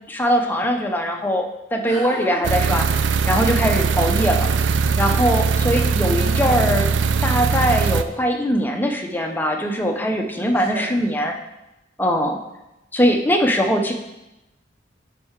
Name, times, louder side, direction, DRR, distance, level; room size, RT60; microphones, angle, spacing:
voice 1, 0.0-6.9 7.2-11.4 12.0-12.4 12.9-13.9, equal, 10° left, 3 dB, 0.6 m, -21 dB
voice 2, 1.9-2.4 6.2-6.8 10.7-10.8, right 1 dB, 35° right, -7 dB, 2.5 m, -32 dB
sound 1, 2.4-8.0, right 5 dB, 85° right, 0.4 m, -20 dB
7.6 x 5.3 x 3.6 m, 0.94 s
head